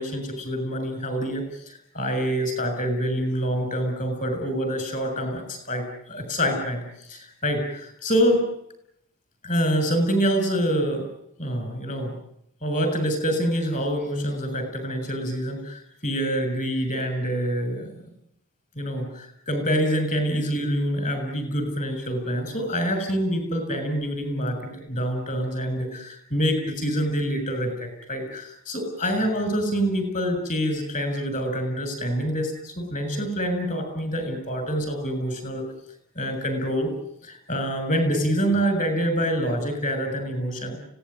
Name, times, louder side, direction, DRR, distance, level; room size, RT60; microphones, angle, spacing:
voice 1, 0.0-6.8 7.1-8.5 9.4-11.1 11.4-12.2 12.6-17.9 18.8-35.7 36.2-36.9 37.2-40.8, equal, 35° left, 7 dB, 6.9 m, -26 dB
25.5 x 18.0 x 9.5 m, 0.76 s
head